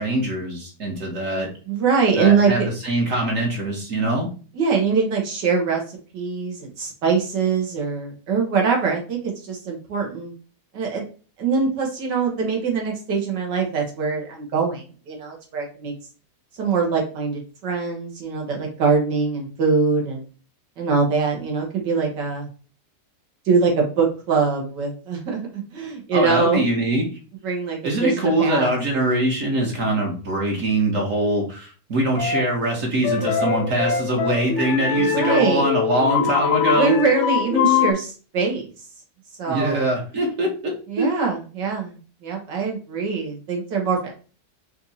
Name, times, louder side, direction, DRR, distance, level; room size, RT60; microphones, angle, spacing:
voice 1, 0.0-1.5 2.1-4.3 26.1-27.1 27.8-36.9 39.5-41.2, right 1 dB, 55° right, 0 dB, 1.3 m, -23 dB
voice 2, 1.7-2.7 4.6-10.3 10.7-11.1 11.4-15.9 16.6-20.2 20.8-22.5 23.5-26.7 27.4-28.8 35.1-35.6 36.7-38.7 39.4-39.9 40.9-44.1, right 5 dB, 85° right, 0 dB, 1.9 m, -23 dB
sound 1, 32.2-32.6 33.0-37.9, left 8 dB, 60° left, 0.8 m, -23 dB
4.5 x 2.6 x 4.1 m, 0.38 s
omnidirectional pair, 1.8 m